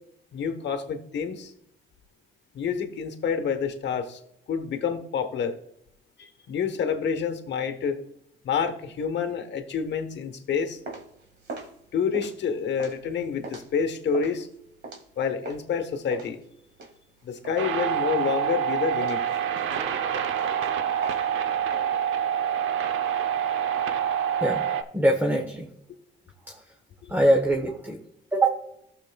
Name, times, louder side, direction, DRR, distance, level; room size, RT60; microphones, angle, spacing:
voice 1, 0.3-1.5 2.5-4.2 4.5-5.5 6.2-8.0 8.4-10.8 11.9-14.5 15.2-16.4 17.2-19.2 27.0-27.1, left 6 dB, 65° left, 1.1 m, -28 dB
sound 1, 10.5-15.7 16.1-17.9 18.2-18.6 19.0-21.8, right 3 dB, 55° right, 1.9 m, -41 dB
sound 2, 17.6-24.8, right 9 dB, 85° right, 0.8 m, -26 dB
voice 2, 24.9-25.7 26.5-26.6 27.1-28.0 28.3-28.6, right 1 dB, 10° right, 1.2 m, -23 dB
14.5 x 6.7 x 2.3 m
cardioid pair, 90°, 20 cm